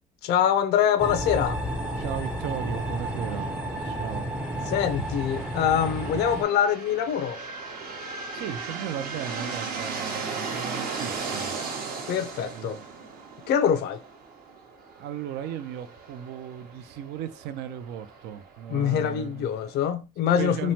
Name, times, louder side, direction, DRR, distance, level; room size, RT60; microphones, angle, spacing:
voice 1, 0.2-1.6 4.7-7.4 12.1-12.8 13.5-14.0 18.7-20.7, left 9 dB, 75° left, 0.5 m, -24 dB
sound 1, 1.0-6.4, equal, 5° right, 0.5 m, -31 dB
voice 2, 2.0-3.5 3.8-4.3 4.6-4.7 8.3-11.6 12.5-12.8 15.0-19.5 20.4-20.7, right 9 dB, 80° right, 0.4 m, -36 dB
sound 2, 2.3-19.9, right 4 dB, 60° right, 0.8 m, -38 dB
3.1 x 2.1 x 2.7 m
cardioid pair, 110°, 17 cm